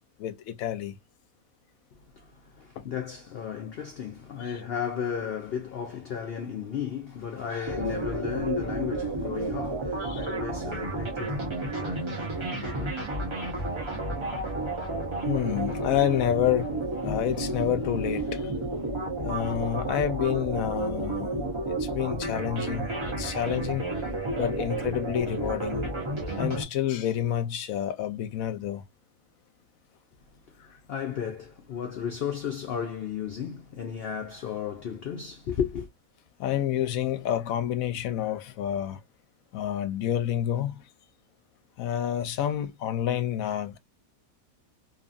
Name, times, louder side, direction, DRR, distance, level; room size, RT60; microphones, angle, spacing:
voice 1, 0.2-1.0 2.8-2.9 4.4-4.6 10.0-10.3 15.3-18.6 19.2-23.8 24.3-25.9 26.3-28.8 30.6-30.8 36.4-39.0 39.5-40.8 41.8-43.8, left 11 dB, 75° left, 1.0 m, -29 dB
voice 2, 2.1-12.2 12.4-12.9 30.9-35.9, left 8 dB, 60° left, 0.6 m, -34 dB
sound 1, 7.6-26.6, right 2 dB, 25° right, 0.8 m, -31 dB
2.7 x 2.5 x 2.4 m
omnidirectional pair, 1.5 m